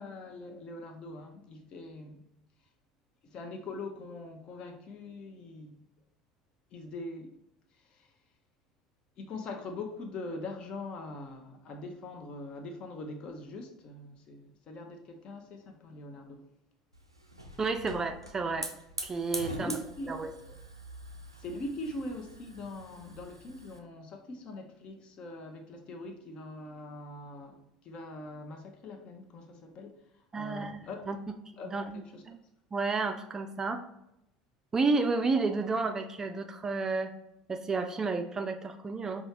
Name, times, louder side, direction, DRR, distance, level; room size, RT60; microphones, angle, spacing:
voice 1, 0.0-2.2 3.2-5.8 6.7-7.3 7.9-8.1 9.2-16.5 19.4-20.1 21.4-31.1 31.6-32.2, left 2 dB, 40° left, 0.7 m, -42 dB
Hiss / Fire, 16.9-23.8, right 1 dB, 90° right, 0.4 m, -44 dB
voice 2, 17.6-18.7 19.0-19.7 20.1-20.3 30.3-31.2 31.7-32.4 32.7-33.8 34.7-37.1 37.5-39.2, right 3 dB, 20° right, 0.4 m, -31 dB
5.1 x 2.4 x 2.9 m
figure-of-eight pair, 70°, 2 cm